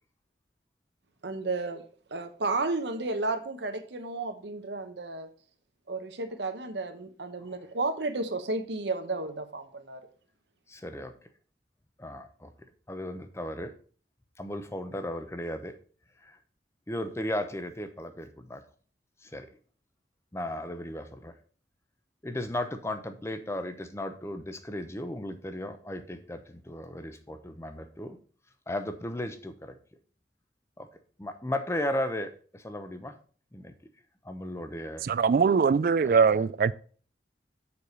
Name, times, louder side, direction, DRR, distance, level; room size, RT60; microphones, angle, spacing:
voice 1, 1.2-1.8 2.1-5.3 5.9-10.0, right 3 dB, 75° right, 0.9 m, -32 dB
voice 2, 10.7-11.1 12.0-12.5 12.9-13.7 14.4-15.7 16.2-16.4 16.9-18.6 19.2-19.5 20.3-21.3 22.2-28.2 28.7-29.7 30.8-30.9 31.2-33.1 33.5-33.7 34.2-35.0 36.0-36.3, left 1 dB, 15° left, 0.7 m, -35 dB
voice 3, 35.0-36.7, right 5 dB, 50° right, 0.3 m, -22 dB
7.0 x 4.8 x 5.4 m
head